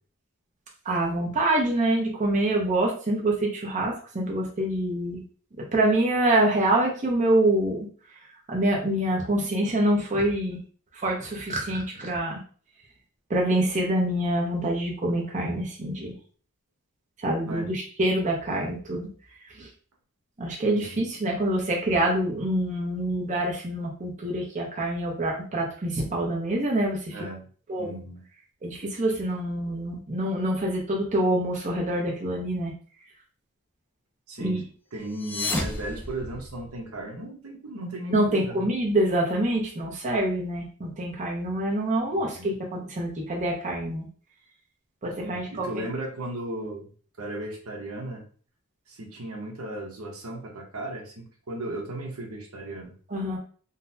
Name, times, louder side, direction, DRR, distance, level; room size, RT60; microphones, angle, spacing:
voice 1, 0.9-5.2 5.7-7.9 8.5-10.6 10.9-12.4 13.3-16.1 17.2-19.1 19.6-19.7 20.4-27.2 27.7-28.0 28.6-32.7 34.4-34.6 38.1-44.0 45.0-45.8 53.1-53.4, right 1 dB, 35° right, -1 dB, 0.6 m, -26 dB
voice 2, 27.1-27.5 27.8-28.2 34.3-34.6 34.9-38.7 42.1-42.5 45.2-46.9 47.2-48.2 48.9-52.9, right 1 dB, 70° right, 1 dB, 0.8 m, -36 dB
sound 1, 35.0-36.9, left 2 dB, 10° left, 0.4 m, -32 dB
3.7 x 2.1 x 2.6 m, 0.42 s
head